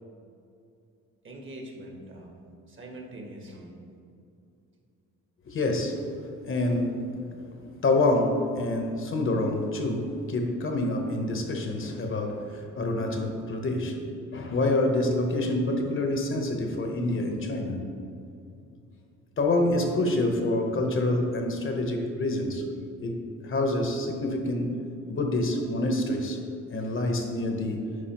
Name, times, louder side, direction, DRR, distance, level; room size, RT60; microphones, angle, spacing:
voice 1, 1.2-2.4 2.7-3.8, right 1 dB, 40° right, 1 dB, 1.3 m, -43 dB
voice 2, 5.5-6.0 6.4-14.0 14.3-17.9 19.4-22.6 23.0-24.7 25.1-26.4 26.7-27.9, left 2 dB, 45° left, 3 dB, 0.9 m, -27 dB
9.6 x 4.8 x 2.9 m, 2.5 s
cardioid pair, 90°, 30 cm